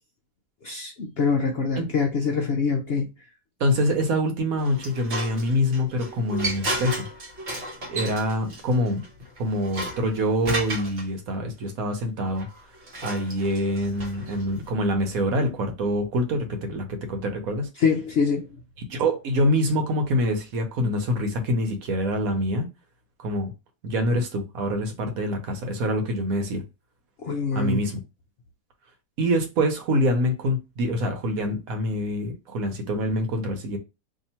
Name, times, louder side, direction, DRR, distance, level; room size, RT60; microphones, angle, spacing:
voice 1, 0.6-3.1 17.8-18.5 27.2-27.8, left 5 dB, 65° left, 0.6 m, -24 dB
voice 2, 3.6-7.1 7.9-9.0 9.4-12.5 13.0-17.7 18.9-22.7 23.2-23.5 23.8-26.6 27.5-28.0 29.2-33.8, equal, 70° right, 1.2 m, -25 dB
sound 1, 4.6-11.0 12.4-14.7, right 1 dB, 45° right, 1.1 m, -34 dB
2.8 x 2.8 x 4.2 m
omnidirectional pair, 1.6 m